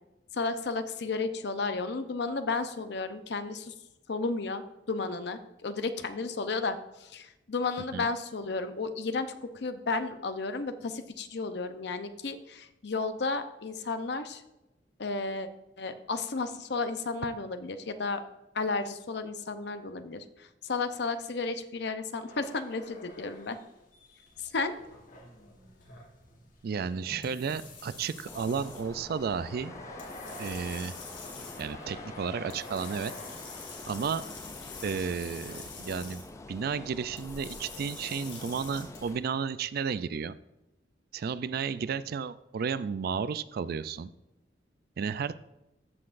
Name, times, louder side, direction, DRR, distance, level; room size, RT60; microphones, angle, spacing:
voice 1, 0.3-3.7 4.1-14.4 15.0-15.5 15.8-18.2 18.5-23.6 24.4-24.7, left 3 dB, 65° left, 9 dB, 0.7 m, -33 dB
sound 1, 22.3-26.4 26.9-27.0 27.8-37.1, left 1 dB, 50° left, 1.3 m, -50 dB
sound 2, 24.3-39.1, left 4 dB, 90° left, 2.6 m, -47 dB
voice 2, 26.6-29.7 30.4-30.9 31.6-33.1 33.9-34.2 34.8-36.2 36.5-40.4 41.1-44.1 45.0-45.4, right 6 dB, 55° right, 15 dB, 0.3 m, -33 dB
sound 3, 28.2-39.2, left 2 dB, 15° left, 0.3 m, -46 dB
14.0 x 5.8 x 2.5 m, 0.94 s
head